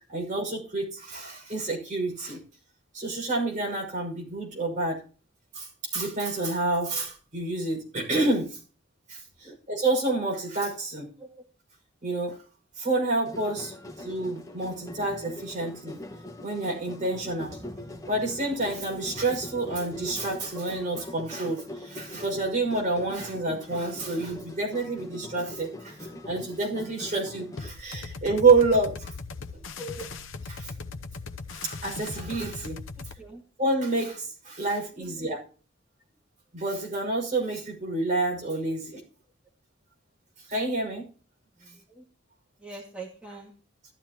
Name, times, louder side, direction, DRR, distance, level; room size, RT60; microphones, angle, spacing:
voice 1, 0.1-2.4 2.9-5.0 5.5-8.6 9.1-11.1 12.0-12.4 12.8-16.0 16.4-17.6 18.1-29.1 30.5-30.7 31.5-32.8 33.6-35.4 36.5-39.0 40.5-41.0, right 3 dB, 40° right, -1 dB, 6.1 m, -28 dB
sound 1, 13.2-27.7, left 1 dB, 15° left, 1.6 m, -42 dB
sound 2, 27.6-33.2, left 4 dB, 85° left, 0.8 m, -39 dB
voice 2, 29.8-30.1 33.2-33.4 35.0-35.4 41.6-42.0 42.6-43.5, right 2 dB, 5° right, -3 dB, 2.2 m, -42 dB
16.0 x 12.5 x 3.0 m, 0.38 s
head